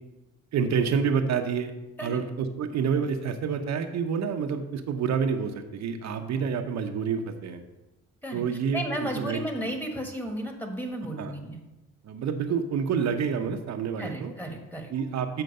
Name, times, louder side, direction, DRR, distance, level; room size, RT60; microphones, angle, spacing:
voice 1, 0.5-1.7 2.0-7.6 8.3-8.8 9.2-9.7 11.2-11.3 12.0-14.3 14.9-15.4, right 6 dB, 65° right, 5 dB, 0.7 m, -28 dB
voice 2, 8.7-11.6 14.0-14.9, equal, 5° left, 3 dB, 1.4 m, -33 dB
7.8 x 4.5 x 5.3 m, 1.0 s
cardioid pair, 90°, 30 cm